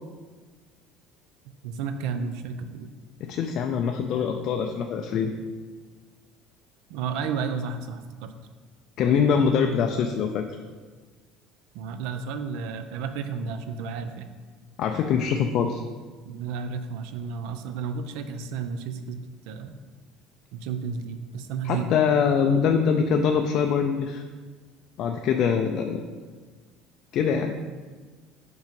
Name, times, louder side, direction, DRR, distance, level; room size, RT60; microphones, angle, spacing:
voice 1, 1.6-2.9 6.9-8.3 11.7-14.3 16.2-19.8 20.5-22.0, right 5 dB, 70° right, 9 dB, 0.5 m, -32 dB
voice 2, 3.2-5.3 9.0-10.5 14.8-15.8 21.6-24.2 25.0-26.0 27.1-27.5, left 6 dB, 45° left, 5 dB, 0.3 m, -23 dB
5.4 x 3.9 x 5.1 m, 1.4 s
cardioid pair, 175°, 0 cm